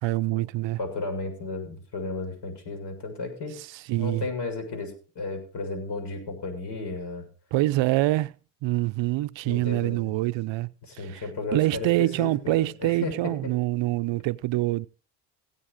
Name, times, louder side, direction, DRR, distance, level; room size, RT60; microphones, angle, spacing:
voice 1, 0.0-0.8 3.6-4.2 7.5-8.3 8.6-11.2 11.5-14.9, right 18 dB, 65° right, 0.6 m, -25 dB
voice 2, 0.8-3.5 4.0-7.3 9.4-10.0 10.9-13.1, left 3 dB, 60° left, 7.0 m, -34 dB
17.0 x 8.2 x 4.9 m
supercardioid pair, 65°, 47 cm